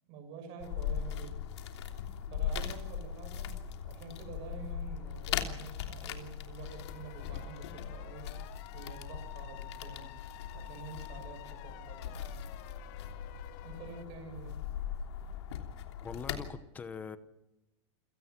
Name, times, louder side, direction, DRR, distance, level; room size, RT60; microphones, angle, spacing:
voice 1, 0.0-1.3 2.3-3.6 3.8-8.3 8.7-10.1 10.5-12.4 13.6-14.5, right 4 dB, 35° right, 7.0 m, -48 dB
sound 1, 0.6-16.5, left 8 dB, 70° left, 3.2 m, -40 dB
sound 2, 6.7-14.0, left 17 dB, 35° left, 1.1 m, -52 dB
voice 2, 16.0-17.2, left 5 dB, 10° left, 1.0 m, -42 dB
29.0 x 18.0 x 6.0 m
supercardioid pair, 180°, 15 cm